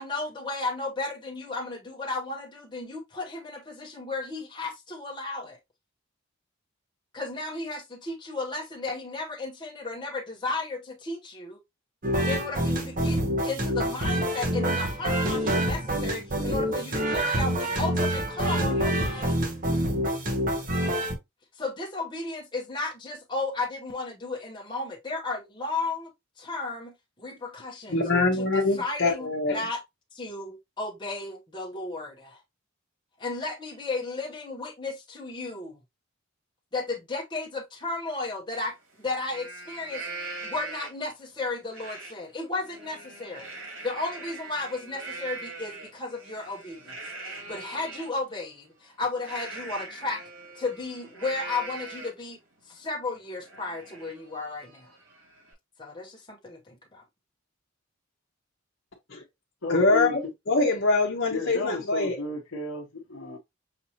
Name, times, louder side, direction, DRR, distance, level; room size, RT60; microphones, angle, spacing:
voice 1, 0.0-5.6 7.1-11.6 12.3-19.3 21.5-26.1 26.4-26.9 27.2-28.0 28.3-29.8 30.1-32.4 33.2-35.8 36.7-40.0 40.4-43.5 43.8-50.2 50.5-52.4 52.7-54.9 55.8-57.0, left 3 dB, 20° left, 0.8 m, -34 dB
sound 1, 12.0-21.1, equal, 40° right, 0.9 m, -26 dB
voice 2, 27.9-29.6 59.1-59.2 59.7-62.2, left 3 dB, 50° left, 0.9 m, -24 dB
Livestock farm animals working animals, 38.5-38.6 39.0-41.1 41.7-42.1 42.5-48.1 49.2-52.3 52.7-52.8 53.2-55.5, right 3 dB, 70° right, 2.4 m, -41 dB
voice 3, 59.6-60.1 61.3-63.4, left 3 dB, 75° left, 0.8 m, -33 dB
5.9 x 2.8 x 2.8 m
head